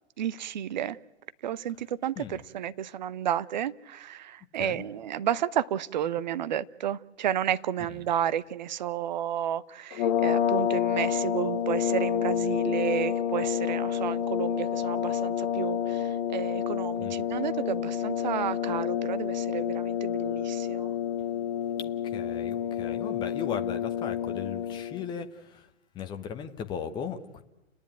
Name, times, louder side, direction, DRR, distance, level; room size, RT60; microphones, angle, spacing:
voice 1, 0.2-1.0 1.4-20.9, right 10 dB, 40° right, 0.7 m, -31 dB
sound 1, 9.9-25.0, left 9 dB, 30° left, 1.6 m, -29 dB
voice 2, 21.8-25.7 25.9-27.4, left 7 dB, 15° left, 1.0 m, -37 dB
30.0 x 10.5 x 9.2 m
figure-of-eight pair, 120°, 34 cm